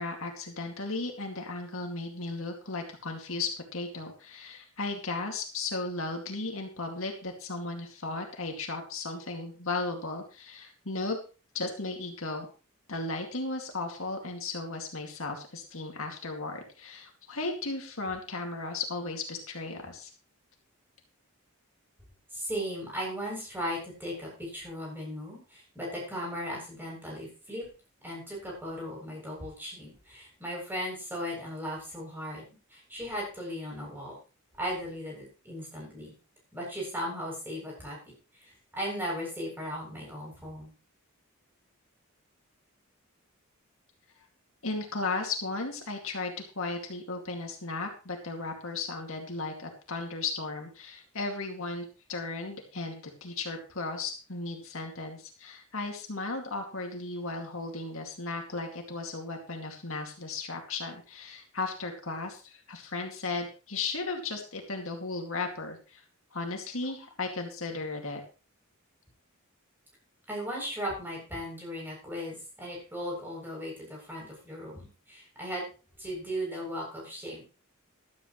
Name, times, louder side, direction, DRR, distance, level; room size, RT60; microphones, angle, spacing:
voice 1, 0.0-11.2 11.5-12.5 12.9-20.1 44.6-66.0 66.3-68.2, left 3 dB, 65° left, 2 dB, 2.4 m, -35 dB
voice 2, 22.3-27.7 28.0-34.1 34.6-36.1 36.5-40.7 70.3-75.7 76.0-77.4, equal, 10° right, -2 dB, 7.8 m, -37 dB
14.0 x 13.0 x 3.2 m, 0.34 s
head